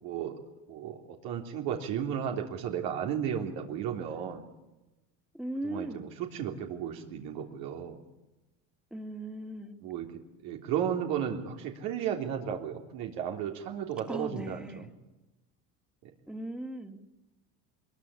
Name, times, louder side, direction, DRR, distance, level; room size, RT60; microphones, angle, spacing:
voice 1, 0.0-0.3 0.7-4.4 5.6-8.0 9.8-10.1 10.4-14.9, right 9 dB, 70° right, 2 dB, 3.5 m, -34 dB
voice 2, 5.3-6.1 8.9-9.8 14.1-14.9 16.3-17.0, right 1 dB, ahead, 7 dB, 2.5 m, -38 dB
23.0 x 22.0 x 8.6 m, 1.0 s
supercardioid pair, 105°, 37 cm